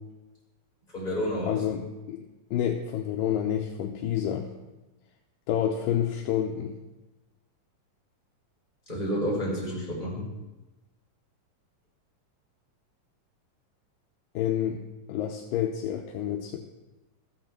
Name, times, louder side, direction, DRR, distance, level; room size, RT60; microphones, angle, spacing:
voice 1, 0.9-1.6 8.9-10.3, equal, 10° left, -6 dB, 5.2 m, -30 dB
voice 2, 1.5-2.2 2.5-4.5 5.5-6.7 14.4-14.8 15.1-16.6, left 10 dB, 85° left, 3 dB, 2.5 m, -28 dB
13.5 x 7.8 x 7.5 m, 1.1 s
omnidirectional pair, 3.9 m